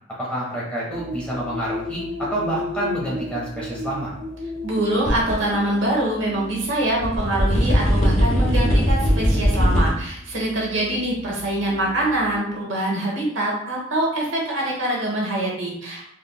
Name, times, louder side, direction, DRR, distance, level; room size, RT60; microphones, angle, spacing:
voice 1, 0.2-4.1, right 1 dB, 5° left, -6 dB, 1.1 m, -28 dB
sound 1, 0.9-12.4, left 1 dB, 35° right, 0.6 m, -35 dB
voice 2, 4.6-16.1, right 1 dB, 65° right, -2 dB, 1.0 m, -24 dB
sound 2, 5.1-5.3 5.8-5.9 7.0-9.9, equal, 35° left, 0.8 m, -19 dB
3.7 x 3.3 x 2.2 m, 0.71 s
head